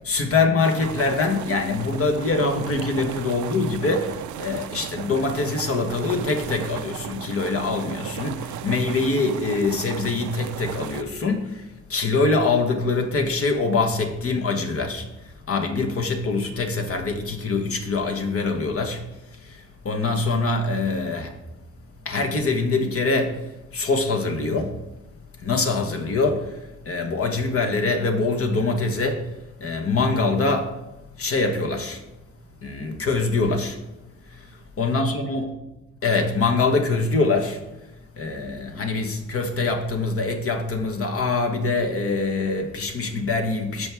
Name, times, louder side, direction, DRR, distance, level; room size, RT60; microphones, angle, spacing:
voice 1, 0.1-21.4 22.0-24.8 25.4-30.8 31.2-32.0 32.6-33.8 34.3-35.5 36.0-37.6 38.2-43.9, left 3 dB, 50° left, 1.3 m, -24 dB
sound 1, 0.6-11.0, right 11 dB, 75° right, 0.5 m, -36 dB
13.0 x 4.7 x 3.5 m
cardioid pair, 90°, 30 cm